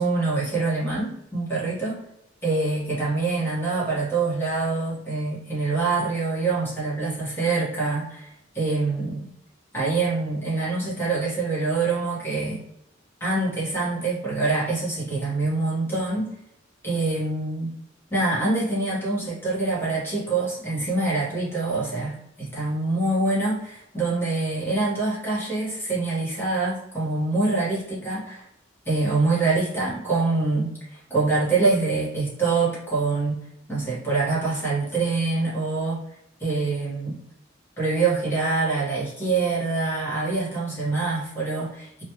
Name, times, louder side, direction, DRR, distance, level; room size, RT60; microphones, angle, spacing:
voice 1, 0.0-2.0 2.4-8.3 8.5-9.3 9.7-12.6 13.2-16.3 16.8-17.7 18.1-28.4 28.8-33.4 33.7-36.0 36.4-37.2 37.8-42.0, right 3 dB, 10° left, -7 dB, 1.1 m, -25 dB
3.0 x 2.3 x 3.0 m, 0.80 s
head